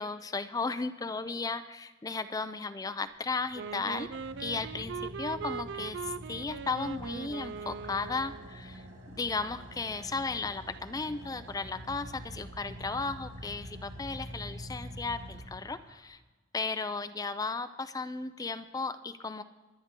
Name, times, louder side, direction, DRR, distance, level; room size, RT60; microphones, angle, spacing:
voice 1, 0.0-4.1 4.4-8.8 9.1-16.2 16.5-19.4, left 4 dB, 20° left, 11 dB, 0.4 m, -35 dB
Car / Idling, 3.1-16.1, equal, 85° right, 2.7 m, -46 dB
Wind instrument woodwind instrument, 3.5-8.6, right 6 dB, 65° right, 0.3 m, -40 dB
23.0 x 9.6 x 3.7 m, 1.2 s
head